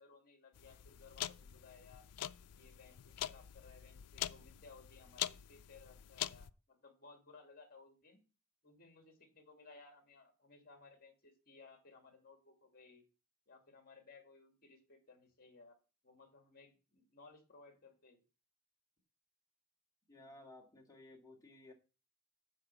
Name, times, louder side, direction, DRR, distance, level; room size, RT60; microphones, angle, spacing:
voice 1, 0.0-2.1 2.5-8.2 8.6-13.0 13.5-15.8 16.0-18.2, left 4 dB, 45° left, 2.6 m, -60 dB
sound 1, 0.6-6.5, left 12 dB, 85° left, 0.4 m, -44 dB
voice 2, 20.1-21.7, left 2 dB, 15° left, 2.1 m, -57 dB
9.7 x 4.3 x 6.9 m
head